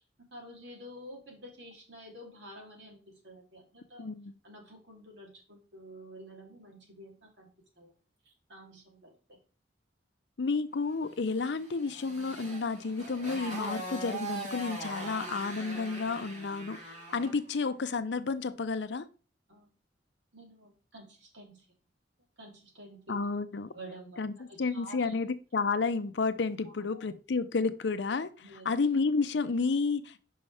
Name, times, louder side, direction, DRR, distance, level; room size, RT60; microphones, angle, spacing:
voice 1, 0.3-4.1 4.4-7.5 7.8-7.9 8.2-9.2 19.5-19.7 20.3-21.7 22.4-23.1 23.7-25.2 26.6-27.0 28.4-28.7, equal, 75° right, 2.9 m, -50 dB
voice 2, 4.0-4.4 10.4-16.8 17.1-19.1 23.1-23.7 24.2-28.3 28.6-30.2, left 4 dB, 75° left, 0.6 m, -31 dB
Motorcycle, 11.4-17.4, right 1 dB, 40° right, 2.7 m, -41 dB
5.5 x 5.5 x 4.8 m
head